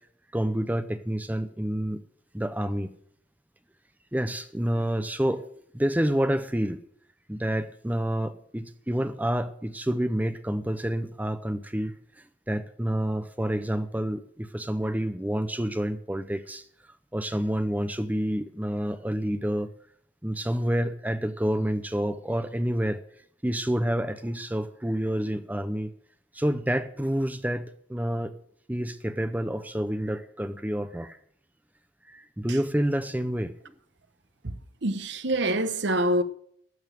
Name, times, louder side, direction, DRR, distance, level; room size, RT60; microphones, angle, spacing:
voice 1, 0.3-2.0 2.3-2.9 4.1-5.4 5.7-6.8 7.3-16.7 17.1-19.7 20.2-23.0 23.4-25.9 26.3-28.3 28.7-31.2 32.1-33.5, equal, 10° right, 0.6 m, -28 dB
voice 2, 34.4-36.2, right 1 dB, 60° right, 1.0 m, -26 dB
12.5 x 7.2 x 8.9 m
head